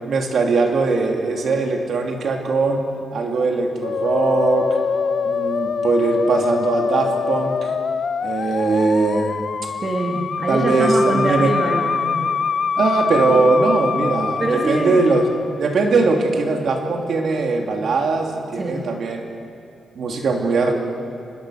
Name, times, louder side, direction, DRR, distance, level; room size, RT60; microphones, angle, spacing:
voice 1, 0.0-2.8 3.1-4.8 5.2-7.7 8.2-9.4 10.5-11.5 12.8-15.3 15.6-19.2 19.9-20.7, right 3 dB, 60° right, 2 dB, 2.8 m, -20 dB
Musical instrument, 3.8-15.6, left 6 dB, 45° left, 0.5 m, -24 dB
voice 2, 9.8-12.4 14.4-15.0 18.5-18.9, right 2 dB, 30° right, 0 dB, 1.7 m, -24 dB
25.0 x 20.5 x 6.5 m, 2.5 s
wide cardioid pair, 150°, 0 cm